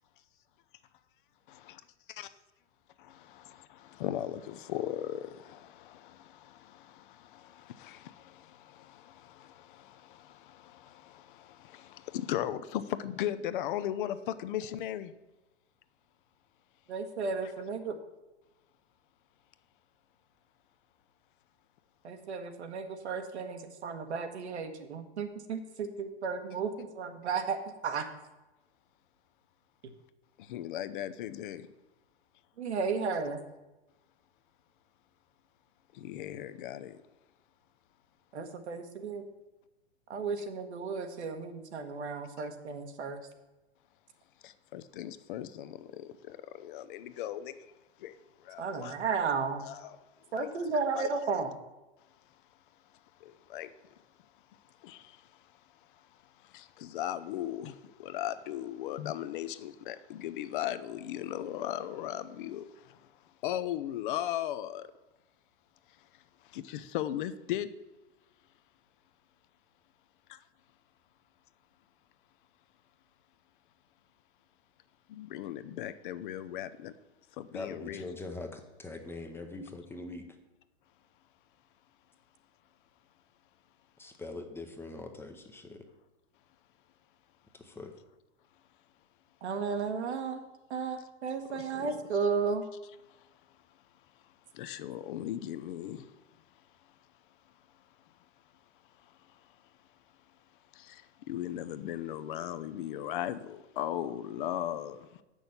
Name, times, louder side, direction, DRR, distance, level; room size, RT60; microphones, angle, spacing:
voice 1, 1.5-1.8 2.1-2.3 3.1-15.1 30.4-31.7 35.9-37.0 44.4-47.7 48.0-49.0 49.6-50.0 50.3-50.5 51.0-51.1 53.2-53.7 54.8-55.3 56.4-63.1 63.4-64.9 66.4-67.7 75.1-76.9 77.4-78.0 91.5-92.0 94.5-96.1 100.7-105.1, left 12 dB, 50° left, 0.6 m, -38 dB
voice 2, 16.9-18.0 22.0-27.6 27.8-28.1 32.6-33.4 38.3-39.2 40.1-43.2 48.6-49.6 50.3-51.5 89.4-90.4 90.7-92.6, right 5 dB, 80° right, 1.4 m, -34 dB
voice 3, 77.5-80.2 84.0-85.8 87.6-87.9, left 2 dB, 5° left, 0.7 m, -42 dB
7.6 x 6.3 x 7.0 m
hypercardioid pair, 130°, 33 cm